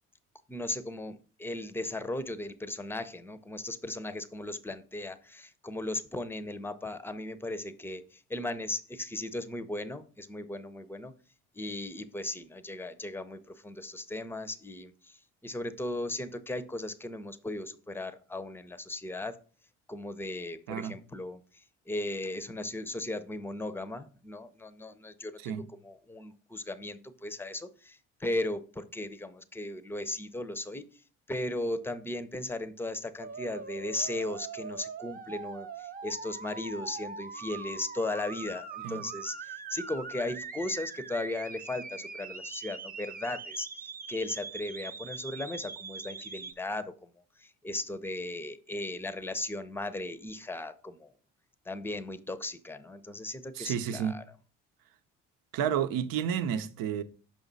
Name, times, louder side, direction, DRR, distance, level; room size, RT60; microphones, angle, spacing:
voice 1, 0.5-11.1 11.5-15.2 15.4-19.4 19.9-25.5 25.8-30.9 31.3-46.9 47.4-51.1 51.7-54.2, left 2 dB, 5° left, 0.7 m, -37 dB
sound 1, 33.2-46.5, right 5 dB, 25° right, 0.8 m, -42 dB
voice 2, 53.5-54.1 55.5-57.0, right 8 dB, 70° right, 0.8 m, -31 dB
6.1 x 5.1 x 4.0 m
supercardioid pair, 70°, 36 cm